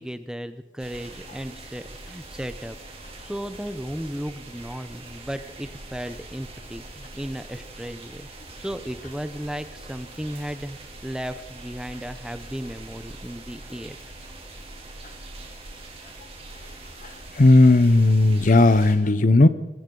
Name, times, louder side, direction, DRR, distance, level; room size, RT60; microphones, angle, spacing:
voice 1, 0.0-2.8 3.2-8.3 8.6-14.0, equal, 5° right, 11 dB, 0.6 m, -35 dB
sound 1, 0.8-18.9, right 2 dB, 35° right, 2.9 m, -42 dB
voice 2, 17.0-19.5, left 2 dB, 45° left, 14 dB, 0.7 m, -16 dB
21.5 x 16.5 x 3.9 m, 1.0 s
head